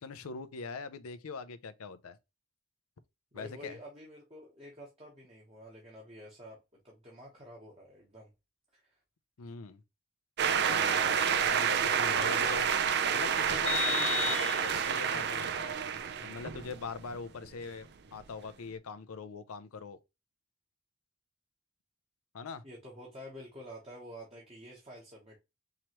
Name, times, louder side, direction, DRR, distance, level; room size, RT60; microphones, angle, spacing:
voice 1, 0.0-2.2 3.3-3.8 9.4-9.8 10.6-12.7 13.1-15.7 16.2-20.0 22.3-22.6, left 4 dB, 85° left, 0.5 m, -42 dB
voice 2, 3.3-8.3 8.7-9.0 22.6-25.4, equal, 25° right, 1.1 m, -49 dB
sound 1, 10.4-17.2, right 7 dB, 50° right, 0.5 m, -29 dB
Vehicle horn car horn honking, 13.7-15.1, left 10 dB, 30° left, 0.8 m, -34 dB
4.7 x 3.0 x 2.9 m
head